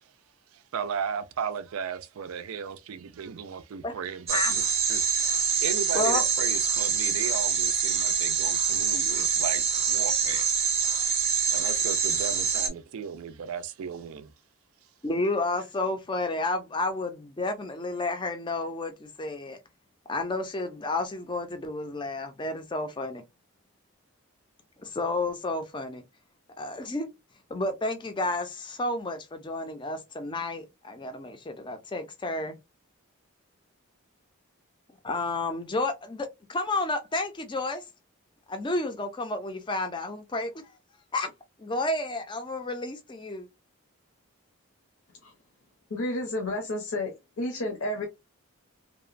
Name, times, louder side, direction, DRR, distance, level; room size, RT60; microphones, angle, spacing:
voice 1, 0.5-5.1 5.4-10.5 11.5-14.3, right 7 dB, 75° right, 0.4 m, -35 dB
sound 1, 4.3-12.7, right 6 dB, 30° right, 0.6 m, -25 dB
voice 2, 5.9-6.2 15.0-19.6 20.1-23.2 24.8-26.0 26.6-27.1 27.5-32.6 35.0-37.8 38.5-40.7 41.1-41.3 41.6-43.5, left 2 dB, 20° left, 0.4 m, -31 dB
voice 3, 45.9-48.1, left 1 dB, 75° left, 0.7 m, -31 dB
2.8 x 2.1 x 2.4 m
head